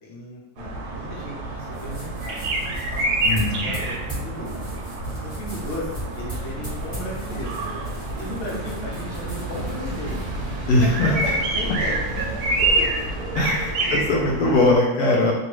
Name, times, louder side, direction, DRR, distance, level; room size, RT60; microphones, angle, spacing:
voice 1, 0.0-4.5 5.2-5.9 6.2-7.6 8.2-10.2 10.7-12.3 12.6-13.2, left 1 dB, 55° left, -3 dB, 1.1 m, -35 dB
sound 1, 0.6-14.8, right 2 dB, 90° right, 1.1 m, -28 dB
sound 2, 1.6-11.3, right 1 dB, 5° left, 1.3 m, -38 dB
voice 2, 3.2-3.7 10.7-11.3 13.4-15.3, left 2 dB, 85° left, -2 dB, 1.1 m, -20 dB
sound 3, 6.3-14.0, equal, 45° right, 0.7 m, -35 dB
2.9 x 2.6 x 3.0 m, 0.98 s
omnidirectional pair, 1.6 m